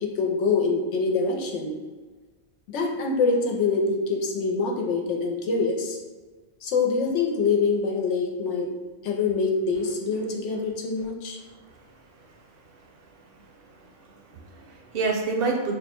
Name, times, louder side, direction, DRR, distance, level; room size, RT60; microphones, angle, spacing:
voice 1, 0.0-1.8 2.7-6.0 6.6-8.7 9.0-11.4, left 4 dB, 80° left, 1 dB, 0.9 m, -25 dB
voice 2, 13.3-15.7, right 4 dB, 60° right, 1 dB, 0.8 m, -30 dB
3.3 x 2.1 x 4.3 m, 1.3 s
omnidirectional pair, 1.2 m